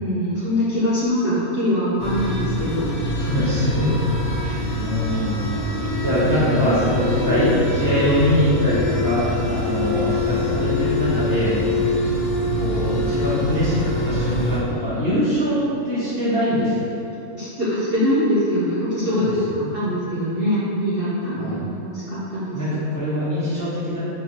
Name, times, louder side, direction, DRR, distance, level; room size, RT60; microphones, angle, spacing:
voice 1, 0.0-2.9 3.8-3.9 4.4-4.6 17.3-22.8, equal, 55° right, -10 dB, 0.7 m, -23 dB
sound 1, 2.0-14.6, left 1 dB, 65° left, 0.9 m, -24 dB
voice 2, 3.1-4.2 4.7-11.6 12.5-15.6 15.8-17.0 19.1-19.7 21.3-21.6 22.5-24.0, equal, 20° left, -11 dB, 0.5 m, -23 dB
3.4 x 2.6 x 2.8 m, 2.9 s
omnidirectional pair, 1.5 m